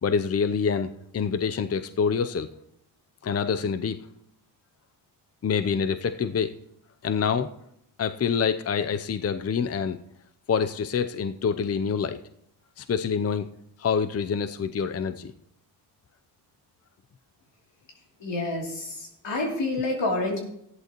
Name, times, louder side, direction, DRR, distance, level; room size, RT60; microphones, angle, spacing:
voice 1, 0.0-2.5 3.2-4.0 5.4-6.5 7.0-7.5 8.0-10.0 10.5-12.2 12.8-13.5 13.8-15.3, left 6 dB, 35° left, 9 dB, 0.6 m, -26 dB
voice 2, 18.2-20.4, left 2 dB, 85° left, -1 dB, 3.1 m, -28 dB
14.5 x 11.0 x 3.0 m, 0.75 s
cardioid pair, 70°, 43 cm